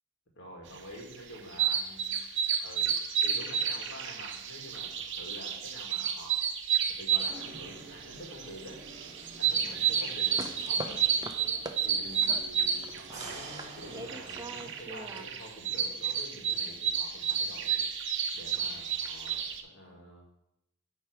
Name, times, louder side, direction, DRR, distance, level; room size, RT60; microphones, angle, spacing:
voice 1, 0.4-2.2 2.6-3.0 3.2-6.4 6.9-8.8 9.4-11.1 11.8-17.8 18.3-20.3, equal, 60° left, 0 dB, 1.9 m, -47 dB
sound 1, 0.9-19.6, right 8 dB, 60° right, 0.7 m, -31 dB
sound 2, 7.2-14.4, right 2 dB, 35° right, 1.2 m, -49 dB
sound 3, 10.0-11.8 12.2-15.2, right 2 dB, 20° right, 0.5 m, -43 dB
9.1 x 3.4 x 4.9 m, 0.86 s
head